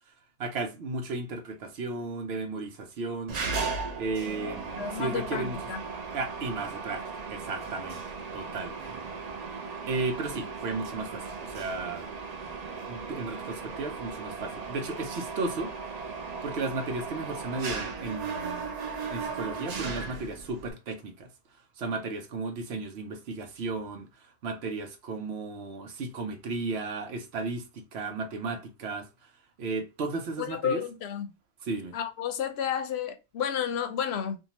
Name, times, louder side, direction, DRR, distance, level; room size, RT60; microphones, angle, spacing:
voice 1, 0.4-3.4 4.0-5.6 6.1-8.0 8.3-8.7 9.9-12.1 12.9-15.7 16.4-18.7 19.1-21.3 21.8-29.1 29.6-30.8 31.6-32.0, right 3 dB, 85° right, 1.0 m, -34 dB
Mechanisms, 3.3-20.7, right 4 dB, 50° right, 0.6 m, -37 dB
voice 2, 4.8-5.8 30.4-31.3 31.9-34.4, left 8 dB, 90° left, 0.8 m, -31 dB
2.7 x 2.3 x 2.8 m
omnidirectional pair, 1.0 m